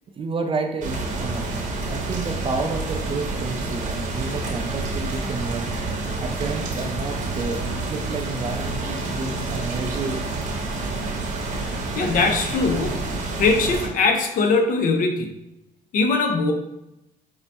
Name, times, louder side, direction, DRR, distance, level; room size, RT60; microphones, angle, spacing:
voice 1, 0.2-5.7 6.2-10.2, right 4 dB, 30° right, 5 dB, 0.4 m, -30 dB
sound 1, 0.8-13.9, right 3 dB, 50° right, 0.8 m, -28 dB
voice 2, 12.0-13.0 13.4-15.3 15.9-16.5, left 3 dB, 55° left, 4 dB, 0.6 m, -21 dB
4.5 x 2.0 x 2.8 m, 0.87 s
cardioid pair, 110°, 17 cm